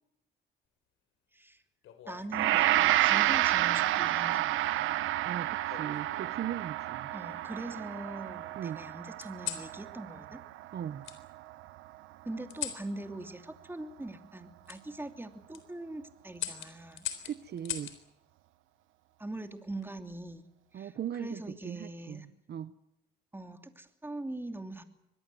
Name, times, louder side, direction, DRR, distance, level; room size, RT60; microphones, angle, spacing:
sound 1, 1.8-3.0 4.0-4.4 5.7-6.4 7.1-8.0 9.2-9.7 11.0-11.2 12.5-12.9 14.7-14.8 15.3-15.6 16.4-18.0 19.5-19.9, left 12 dB, 85° left, 3.8 m, -41 dB
voice 1, 2.1-5.1 7.1-10.4 12.2-17.1 19.2-20.4 20.7-20.9 21.2-22.3 23.3-24.8, right 2 dB, 10° right, 7 dB, 2.8 m, -42 dB
Gong, 2.3-11.5, right 15 dB, 90° right, 1.0 m, -30 dB
voice 2, 5.2-7.1 8.6-8.8 10.7-11.1 17.2-17.9 20.7-22.7, right 9 dB, 55° right, 14 dB, 0.9 m, -39 dB
24.5 x 20.0 x 7.8 m, 0.88 s
cardioid pair, 90°, 20 cm